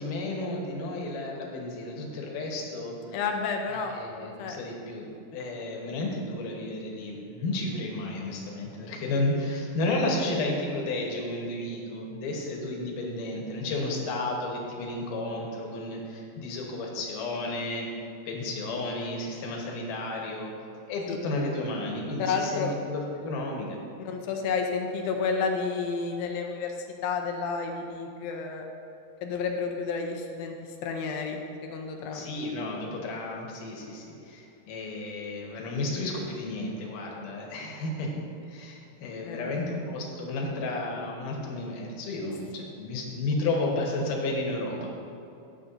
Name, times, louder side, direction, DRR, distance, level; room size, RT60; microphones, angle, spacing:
voice 1, 0.0-3.2 3.9-17.9 18.3-20.5 20.9-23.8 32.1-38.1 38.5-44.9, left 2 dB, 65° left, -1 dB, 2.7 m, -32 dB
voice 2, 3.1-3.9 4.4-4.6 21.1-21.2 22.2-22.7 24.0-26.7 27.0-28.7 29.2-30.6 30.8-32.3 39.2-39.7, left 5 dB, 85° left, 3 dB, 2.4 m, -30 dB
13.5 x 8.1 x 2.7 m, 2.7 s
omnidirectional pair, 4.3 m